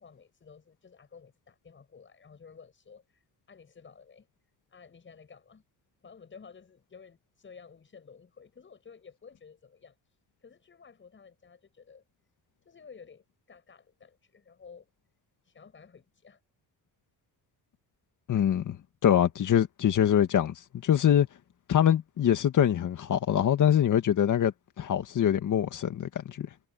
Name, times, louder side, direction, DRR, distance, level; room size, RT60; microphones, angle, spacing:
voice 1, 0.0-4.3 4.7-5.6 6.0-10.0 10.4-12.0 12.6-14.9 15.4-16.4, left 6 dB, 30° left, 7.4 m, -53 dB
voice 2, 18.3-18.8 19.0-20.5 20.8-21.3 21.7-26.5, left 10 dB, 50° left, 2.0 m, -24 dB
cardioid pair, 150°, 39 cm